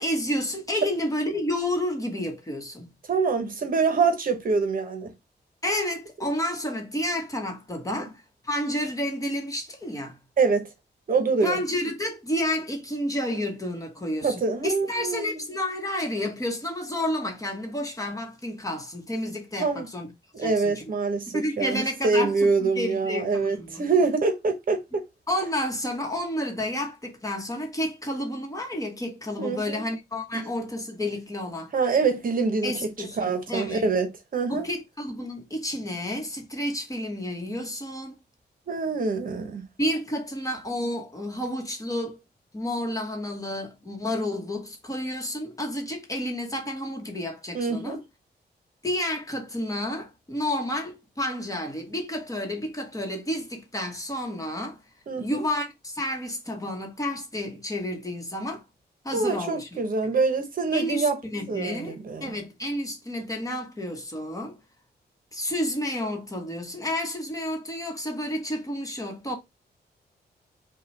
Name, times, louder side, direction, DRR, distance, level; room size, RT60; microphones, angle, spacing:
voice 1, 0.0-2.9 5.6-10.2 11.4-20.1 20.4-20.8 21.3-23.9 25.3-31.7 32.6-33.9 34.5-38.1 39.8-42.2 42.5-48.0 48.8-54.8 55.1-58.6 59.0-59.8 60.7-64.6 65.3-69.4, left 1 dB, 20° left, 1.1 m, -30 dB
voice 2, 3.1-5.1 8.0-8.1 10.4-10.7 11.1-11.6 14.2-15.3 19.6-19.9 20.3-25.0 29.4-29.8 30.3-30.4 31.7-32.8 33.2-34.1 34.3-34.7 38.7-39.6 47.5-48.0 55.1-55.4 59.1-61.2 61.5-62.4, right 4 dB, 55° right, 0.9 m, -25 dB
5.5 x 2.3 x 3.2 m
wide cardioid pair, 135°, 18 cm